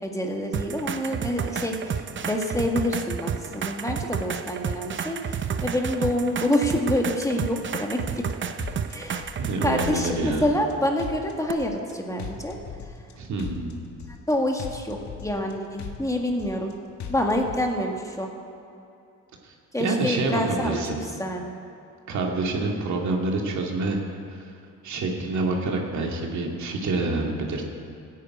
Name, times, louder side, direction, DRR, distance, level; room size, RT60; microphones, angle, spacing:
voice 1, 0.0-8.2 8.9-9.3 9.6-12.6 14.3-16.7 17.1-18.3 19.7-20.8 21.2-21.5, left 1 dB, 10° left, 1 dB, 1.9 m, -27 dB
sound 1, 0.5-10.1 11.5-11.6, right 7 dB, 40° right, 0.7 m, -31 dB
sound 2, 8.0-8.3 8.6-9.5 9.8-10.7 11.0-11.9 12.2-13.1 13.4-14.3 14.6-15.5 15.8-16.7 17.0-17.6, left 7 dB, 65° left, 1.7 m, -38 dB
voice 2, 9.4-10.4 13.1-13.8 19.4-21.0 22.1-24.0 24.3-24.5 24.8-27.6, right 2 dB, 70° right, 0 dB, 2.4 m, -27 dB
14.0 x 10.0 x 8.6 m, 2.7 s
cardioid pair, 90°, 30 cm